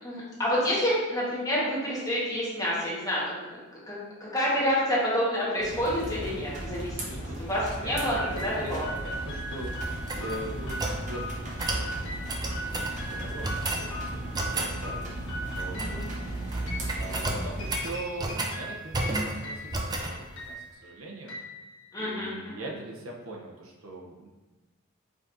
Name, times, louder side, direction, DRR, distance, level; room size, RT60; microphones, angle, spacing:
voice 1, 0.0-8.9 15.7-16.0 21.9-22.7, equal, 15° left, -7 dB, 1.3 m, -29 dB
sound 1, 5.6-17.8, right 1 dB, 35° right, 0.8 m, -36 dB
voice 2, 7.0-9.8 10.2-15.1 15.6-16.0 16.9-20.6 20.8-21.3 22.0-24.3, right 2 dB, 80° right, -1 dB, 0.7 m, -41 dB
sound 2, 7.9-22.3, equal, 65° left, 1.1 m, -40 dB
sound 3, 9.8-11.0 11.6-11.9 12.3-13.0 13.4-13.9 14.3-14.7 15.6-16.1 16.4-16.6 16.9-18.6 18.9-19.4 19.7-20.1, right 2 dB, 20° right, 0.4 m, -32 dB
5.0 x 3.8 x 2.6 m, 1.2 s
head